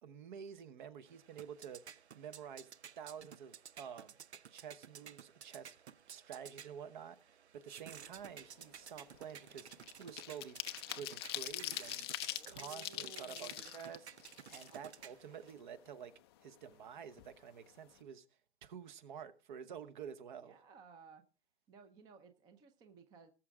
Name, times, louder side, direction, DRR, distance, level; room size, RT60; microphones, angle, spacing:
voice 1, 0.0-2.7 3.0-4.2 4.5-5.8 6.1-14.1 14.5-18.2 18.6-20.5, right 8 dB, 45° right, 1.1 m, -50 dB
sound 1, 1.1-15.5, right 8 dB, 75° right, 0.9 m, -55 dB
sound 2, 8.1-8.3 8.7-15.1 15.5-15.6 15.9-16.9 17.2-17.3 17.6-17.9, left 15 dB, 25° left, 0.5 m, -44 dB
voice 2, 12.2-13.7 14.5-14.8 20.4-21.2 21.7-23.3, right 5 dB, 10° right, 0.7 m, -58 dB
19.0 x 7.4 x 3.6 m
hypercardioid pair, 145°, 33 cm